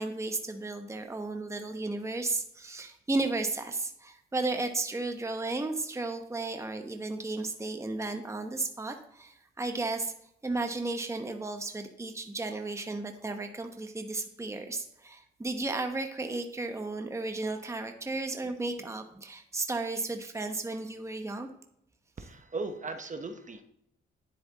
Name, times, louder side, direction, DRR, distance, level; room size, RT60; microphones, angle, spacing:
voice 1, 0.0-10.1 10.4-21.5, right 2 dB, 15° right, 5 dB, 1.0 m, -34 dB
voice 2, 22.2-23.6, right 3 dB, 35° right, 7 dB, 1.1 m, -37 dB
9.9 x 7.5 x 4.1 m, 0.73 s
cardioid pair, 80°, 21 cm